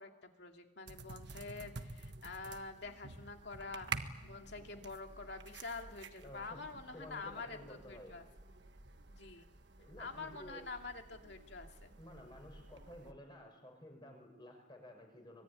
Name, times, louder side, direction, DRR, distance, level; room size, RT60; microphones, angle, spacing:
voice 1, 0.0-8.2 9.1-9.5 10.0-11.9, left 3 dB, 55° left, 4 dB, 2.5 m, -47 dB
sound 1, 0.9-13.1, right 4 dB, 55° right, 1.4 m, -49 dB
voice 2, 4.4-4.8 6.2-6.6 6.9-8.2 9.8-10.6 12.0-15.4, left 1 dB, 20° left, 3 dB, 5.8 m, -53 dB
25.0 x 21.5 x 9.8 m, 1.1 s
head